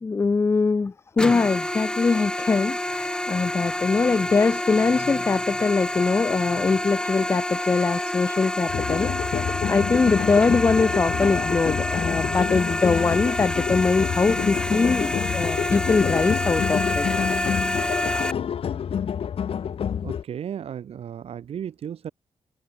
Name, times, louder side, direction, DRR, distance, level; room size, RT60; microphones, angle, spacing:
voice 1, 0.0-17.1, left 4 dB, 25° left, 0.5 m, -22 dB
sound 1, 1.2-18.3, left 1 dB, 10° left, 3.6 m, -28 dB
sound 2, 8.7-20.2, left 8 dB, 70° left, 2.1 m, -28 dB
voice 2, 20.0-22.1, right 9 dB, 80° right, 2.7 m, -34 dB
wide cardioid pair, 115°, 10 cm